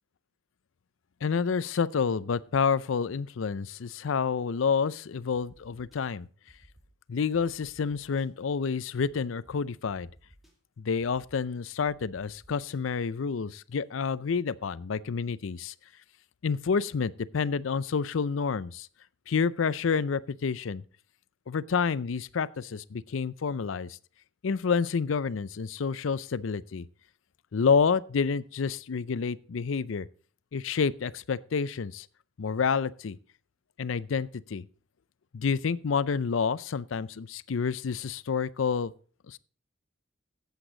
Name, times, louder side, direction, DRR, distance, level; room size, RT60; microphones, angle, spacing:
voice 1, 1.2-6.3 7.1-10.1 10.8-15.7 16.4-18.9 19.3-20.8 21.5-24.0 24.4-26.9 27.5-30.1 30.5-32.1 32.4-33.2 33.8-34.7 35.3-38.9 39.3-39.4, left 5 dB, 90° left, 0.5 m, -29 dB
sound 1, 5.3-6.0 6.5-6.9 7.3-8.3 9.0-9.1 9.4-9.5 9.9-10.5 11.0-11.4 11.9-12.8, equal, ahead, 2.2 m, -57 dB
14.0 x 8.1 x 3.9 m
head